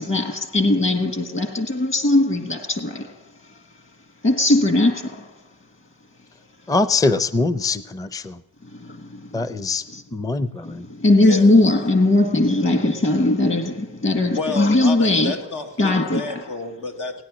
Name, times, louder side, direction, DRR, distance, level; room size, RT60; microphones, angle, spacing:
voice 1, 0.0-3.1 4.2-5.3 8.9-9.0 9.9-10.0 11.0-15.5 15.8-16.4, left 2 dB, 40° left, 1.6 m, -19 dB
voice 2, 6.7-8.4 9.3-9.8 10.1-10.9, left 3 dB, 10° left, 0.5 m, -23 dB
voice 3, 14.3-17.2, left 3 dB, 90° left, 1.7 m, -30 dB
16.5 x 9.9 x 6.1 m
cardioid pair, 90°, 30 cm